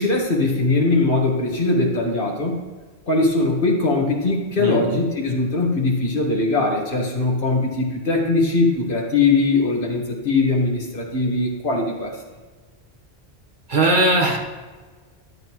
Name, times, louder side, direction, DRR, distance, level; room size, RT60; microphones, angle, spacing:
voice 1, 0.0-2.6 3.1-12.1, left 3 dB, 55° left, 0 dB, 1.9 m, -21 dB
voice 2, 4.6-5.0 13.7-14.4, right 1 dB, 50° right, 1 dB, 1.5 m, -19 dB
13.0 x 9.4 x 3.1 m, 1.4 s
omnidirectional pair, 1.1 m